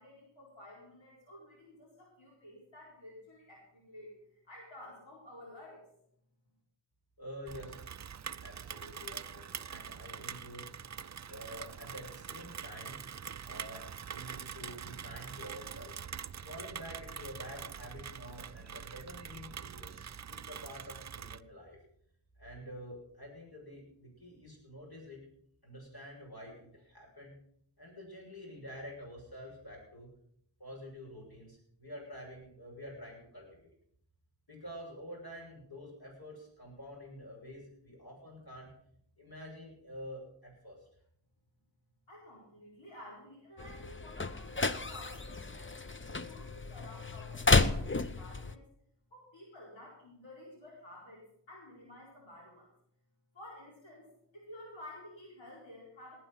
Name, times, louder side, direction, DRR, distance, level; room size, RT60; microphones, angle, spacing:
voice 1, 0.0-5.9 42.1-48.6 49.1-52.7 53.3-56.2, left 1 dB, 90° left, -5 dB, 4.3 m, -52 dB
voice 2, 7.2-7.9 8.4-9.4 9.7-10.8 11.2-13.0 13.4-16.0 16.4-19.9 20.3-21.8 22.4-25.2 25.6-27.3 27.8-30.1 30.6-33.7 34.5-38.7 39.2-40.8, equal, 55° left, -2 dB, 6.8 m, -48 dB
Rain, 7.5-21.4, right 7 dB, 40° right, 0.4 m, -44 dB
sound 1, 43.6-48.5, left 3 dB, 25° left, 0.8 m, -32 dB
18.5 x 9.0 x 5.7 m, 0.71 s
wide cardioid pair, 50°, 44 cm